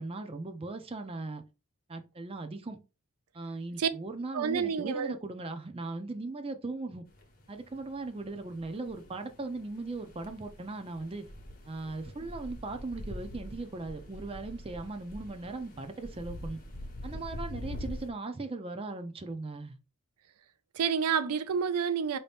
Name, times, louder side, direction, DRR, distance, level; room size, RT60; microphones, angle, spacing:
voice 1, 0.0-1.4 1.9-2.8 3.3-7.0 7.5-11.3 11.7-16.6 17.0-19.8, right 3 dB, 25° right, 0.5 m, -38 dB
voice 2, 4.3-5.2 20.7-22.2, right 7 dB, 85° right, 0.4 m, -29 dB
sound 1, 7.1-18.1, left 1 dB, 40° left, 0.9 m, -44 dB
5.0 x 2.8 x 3.4 m
head